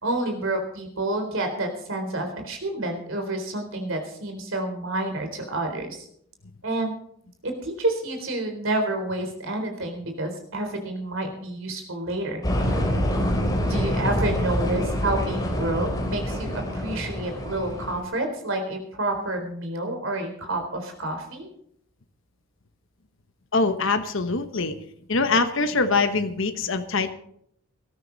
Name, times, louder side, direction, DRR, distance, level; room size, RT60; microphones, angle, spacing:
voice 1, 0.0-6.1 6.6-6.9 7.4-12.4 13.7-21.5, right 2 dB, 60° right, 5 dB, 4.0 m, -29 dB
sound 1, 12.4-18.0, equal, 15° left, 3.1 m, -26 dB
voice 2, 23.5-24.8 25.1-27.1, left 3 dB, 60° left, 8 dB, 1.2 m, -23 dB
19.0 x 13.0 x 4.1 m, 0.68 s
head